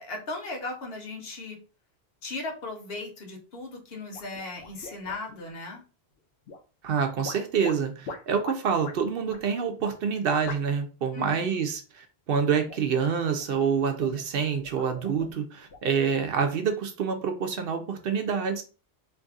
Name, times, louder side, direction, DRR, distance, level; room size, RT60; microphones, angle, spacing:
voice 1, 0.0-1.6 2.2-5.8 11.1-11.5, left 3 dB, 70° left, 1.1 m, -37 dB
sound 1, 4.1-5.5 6.5-6.9 7.2-9.0 9.3-9.4 9.8-10.0 10.5-10.8 11.1-11.5 12.4-13.0 13.4-14.2 14.6-16.2, left 4 dB, 85° left, 0.9 m, -43 dB
voice 2, 6.8-18.6, right 6 dB, 65° right, 0.7 m, -27 dB
2.6 x 2.5 x 3.6 m
omnidirectional pair, 1.1 m